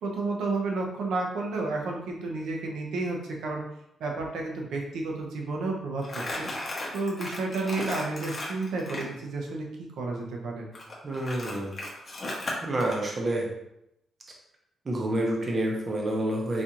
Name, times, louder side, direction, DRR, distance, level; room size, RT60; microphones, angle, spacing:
voice 1, 0.0-3.6 4.0-6.5 6.9-10.7, right 3 dB, 85° right, 0 dB, 0.7 m, -31 dB
Crumpling crinkling, 6.0-9.1 10.7-13.0, left 1 dB, 25° left, 0.7 m, -35 dB
voice 2, 11.0-11.7 12.6-13.5 14.8-16.6, right 1 dB, 25° right, -1 dB, 0.6 m, -28 dB
4.0 x 2.4 x 2.9 m, 0.81 s
wide cardioid pair, 175°, 0 cm